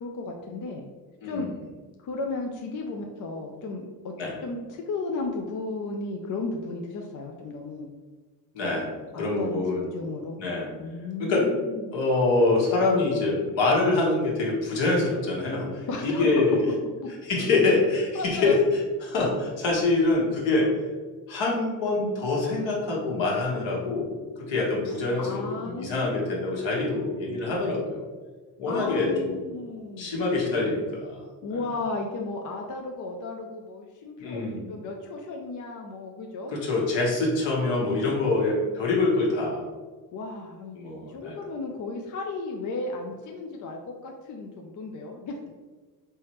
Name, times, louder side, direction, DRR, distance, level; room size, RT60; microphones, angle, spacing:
voice 1, 0.0-0.9 1.2-1.5 2.0-4.1 4.4-7.9 9.1-9.6 9.9-10.4 10.8-11.9 15.9-16.5 17.0-17.1 18.1-18.6 25.2-26.1 28.7-30.2 31.4-36.5 40.1-40.8 41.1-45.4, left 3 dB, 40° left, 2 dB, 0.5 m, -34 dB
voice 2, 8.5-9.9 10.4-10.7 11.2-11.5 11.9-16.6 17.3-18.6 19.0-20.7 21.3-24.1 24.5-28.0 28.6-29.6 30.0-31.2 34.2-34.6 36.5-39.6 40.7-41.3, left 2 dB, 65° left, -3 dB, 1.3 m, -25 dB
3.4 x 3.2 x 3.0 m, 1.4 s
hypercardioid pair, 65°, 49 cm